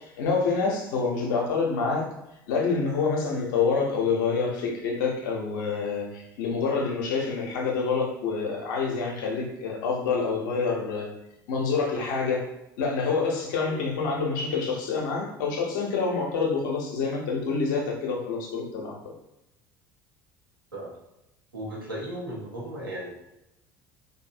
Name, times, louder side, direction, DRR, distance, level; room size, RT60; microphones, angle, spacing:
voice 1, 0.0-2.1 2.5-11.1 11.5-12.4 12.8-19.0, left 4 dB, 65° left, 0 dB, 0.7 m, -27 dB
voice 2, 21.5-23.1, right 1 dB, 85° right, -6 dB, 0.9 m, -35 dB
2.6 x 2.6 x 2.5 m, 0.88 s
figure-of-eight pair, 65°, 11 cm